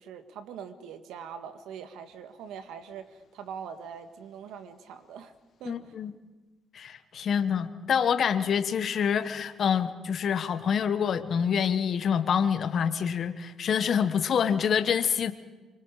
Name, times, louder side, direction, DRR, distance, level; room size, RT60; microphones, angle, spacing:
voice 1, 0.0-5.3 5.6-5.8, right 7 dB, 80° right, 8 dB, 1.7 m, -42 dB
voice 2, 5.6-6.1 6.7-15.3, left 7 dB, 60° left, 10 dB, 1.2 m, -26 dB
25.5 x 25.0 x 4.9 m, 1.2 s
supercardioid pair, 70°, 0 cm